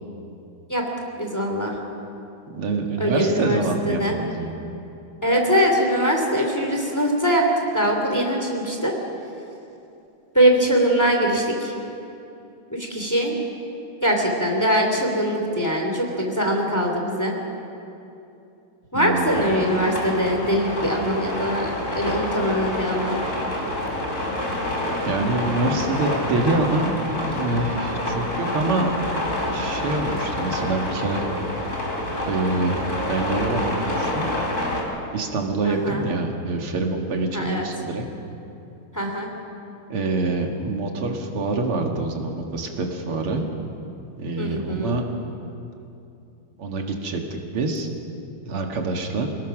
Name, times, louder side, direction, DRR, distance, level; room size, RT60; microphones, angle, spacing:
voice 1, 1.2-1.7 3.0-4.2 5.2-7.4 7.7-8.9 10.3-11.7 12.7-13.3 14.0-17.3 18.9-23.2 35.6-36.1 37.3-37.7 38.9-39.3 44.4-45.0, equal, 10° left, 1 dB, 2.8 m, -22 dB
voice 2, 2.5-4.5 18.9-19.5 25.1-28.9 29.5-31.2 32.2-32.8 33.1-34.3 35.1-38.0 39.9-43.5 44.2-45.0 46.6-47.9 48.4-49.3, right 2 dB, 85° right, 2 dB, 2.8 m, -26 dB
sound 1, 19.3-34.8, left 1 dB, 35° left, 4.1 m, -27 dB
27.5 x 18.5 x 6.1 m, 2.8 s
omnidirectional pair, 2.4 m